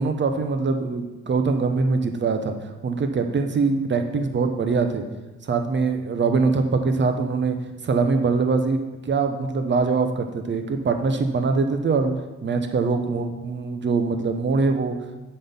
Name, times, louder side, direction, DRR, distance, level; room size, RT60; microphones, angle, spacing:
voice 1, 0.0-2.5 2.8-5.0 5.4-7.6 7.8-8.8 9.0-12.1 12.4-15.0, right 4 dB, 40° right, 6 dB, 0.9 m, -23 dB
7.6 x 4.4 x 5.4 m, 1.1 s
cardioid pair, 90°, 30 cm